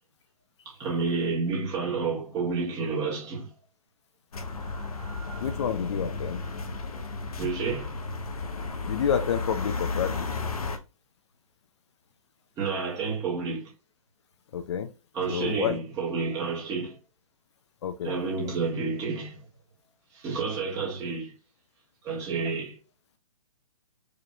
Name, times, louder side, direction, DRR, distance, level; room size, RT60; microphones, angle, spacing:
voice 1, 0.7-3.5 4.6-5.5 7.4-8.0 12.6-13.7 15.1-17.0 18.0-19.4 20.1-21.4 22.0-22.8, right 4 dB, 20° right, 1.7 m, -30 dB
sound 1, 4.3-10.8, left 3 dB, 80° left, 1.0 m, -33 dB
voice 2, 5.4-6.4 8.9-10.2 14.5-14.9 15.3-15.8 17.8-18.2 18.4-18.5, left 8 dB, 50° left, 0.5 m, -29 dB
4.9 x 2.9 x 2.3 m
hypercardioid pair, 145°, 19 cm